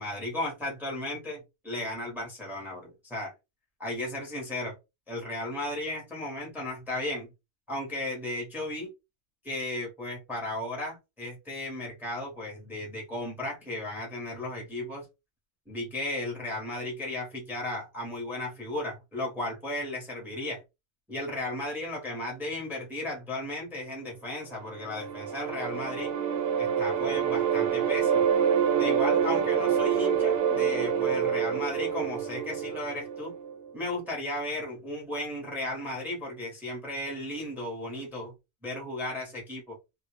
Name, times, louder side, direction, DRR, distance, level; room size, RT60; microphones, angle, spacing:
voice 1, 0.0-3.3 3.8-4.7 5.1-7.3 7.7-8.9 9.4-15.0 15.7-20.6 21.1-26.1 26.6-28.2 28.7-33.3 33.7-38.3 38.6-39.8, left 1 dB, ahead, -2 dB, 0.7 m, -35 dB
sound 1, 24.6-33.7, right 8 dB, 85° right, 1.0 m, -27 dB
2.3 x 2.0 x 3.0 m, 0.25 s
omnidirectional pair, 1.3 m